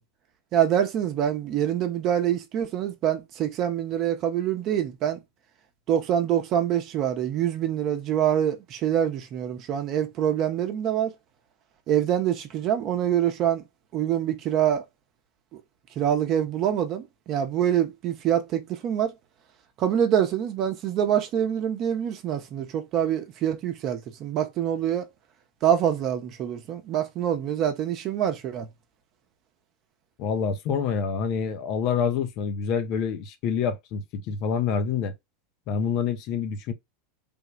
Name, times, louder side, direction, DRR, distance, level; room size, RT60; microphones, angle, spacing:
voice 1, 0.5-5.2 5.9-11.1 11.9-13.6 13.9-14.8 15.5-15.6 16.0-19.1 19.8-25.1 25.6-28.7, right 10 dB, 40° right, 0.8 m, -25 dB
voice 2, 30.2-35.1 35.7-36.7, left 6 dB, 45° left, 0.6 m, -27 dB
3.5 x 2.3 x 3.2 m
figure-of-eight pair, 85°, 0 cm